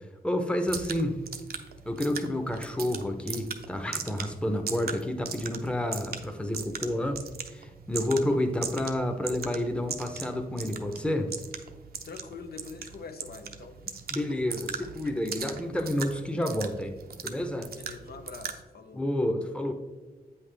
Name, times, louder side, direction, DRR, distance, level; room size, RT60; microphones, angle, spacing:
voice 1, 0.2-1.2 1.8-7.2 7.5-11.3 14.1-16.9 17.2-17.7 18.9-19.7, left 1 dB, 5° left, 5 dB, 0.7 m, -29 dB
sound 1, 0.7-18.6, right 6 dB, 70° right, 0.6 m, -40 dB
voice 2, 12.0-13.8 17.7-19.0, left 4 dB, 75° left, 7 dB, 0.6 m, -44 dB
8.3 x 5.6 x 3.3 m, 1.2 s
wide cardioid pair, 105°, 16 cm